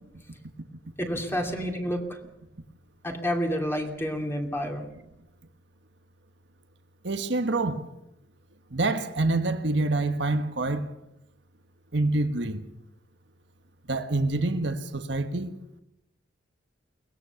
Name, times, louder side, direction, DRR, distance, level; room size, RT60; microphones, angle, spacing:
voice 1, 1.0-2.2 3.0-4.9, equal, 15° left, 2.7 m, -29 dB
voice 2, 7.0-7.9 8.7-10.9 11.9-12.7 13.9-15.6, right 2 dB, 65° right, 1.4 m, -26 dB
22.5 x 19.5 x 7.1 m
head